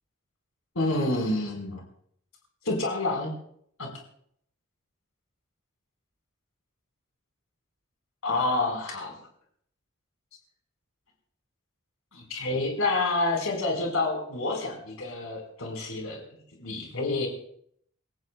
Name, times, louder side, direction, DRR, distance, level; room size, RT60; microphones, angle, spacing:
voice 1, 0.7-1.8 2.6-3.3 3.8-3.9 8.2-9.1 12.1-16.2 16.6-17.3, left 2 dB, 80° left, 1 dB, 4.6 m, -28 dB
28.0 x 16.0 x 2.3 m, 0.67 s
head